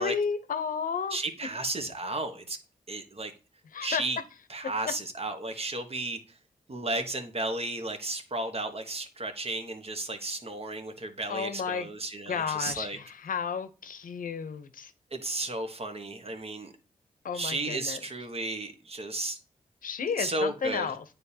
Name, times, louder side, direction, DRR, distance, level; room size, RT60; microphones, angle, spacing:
voice 1, 0.0-1.2 3.7-4.0 11.3-11.9 12.3-14.9 17.2-18.0 19.8-21.0, left 6 dB, 70° left, 0.7 m, -32 dB
voice 2, 1.1-2.6 2.9-3.3 3.8-4.2 4.5-6.2 6.7-13.0 15.1-16.7 17.3-19.4 20.2-20.9, right 2 dB, 45° right, 1.2 m, -33 dB
9.3 x 3.6 x 2.8 m
cardioid pair, 45°, 15 cm